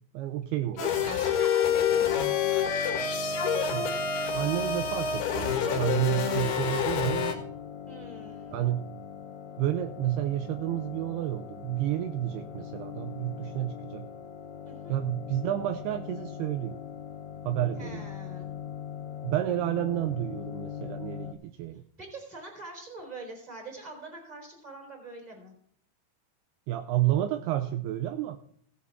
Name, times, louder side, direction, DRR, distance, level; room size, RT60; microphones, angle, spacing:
voice 1, 0.1-0.9 3.7-3.9 4.3-7.4 8.5-8.9 9.6-14.1 14.9-16.8 17.4-18.1 19.2-21.8 26.7-28.4, right 13 dB, 80° right, 8 dB, 2.5 m, -30 dB
sound 1, 0.8-7.3, left 7 dB, 70° left, 3.6 m, -27 dB
voice 2, 0.8-2.7 7.9-8.7 14.6-14.9 17.8-18.5 22.0-25.5, right 2 dB, 10° right, 0 dB, 3.7 m, -44 dB
sound 2, 1.9-21.3, left 8 dB, 90° left, 3.1 m, -41 dB
17.0 x 8.6 x 3.7 m, 0.62 s
omnidirectional pair, 4.9 m